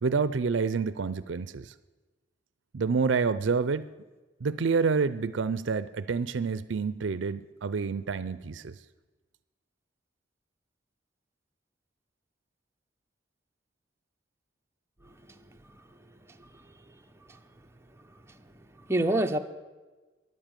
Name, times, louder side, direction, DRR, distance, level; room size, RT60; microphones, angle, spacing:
voice 1, 0.0-1.7 2.7-3.9 4.4-8.8, right 5 dB, 80° right, 15 dB, 0.5 m, -28 dB
voice 2, 15.3-15.6 16.3-16.6 17.3-17.4 18.3-18.4 18.8-19.4, right 1 dB, 15° right, 5 dB, 0.9 m, -29 dB
13.0 x 11.0 x 9.0 m, 1.2 s
head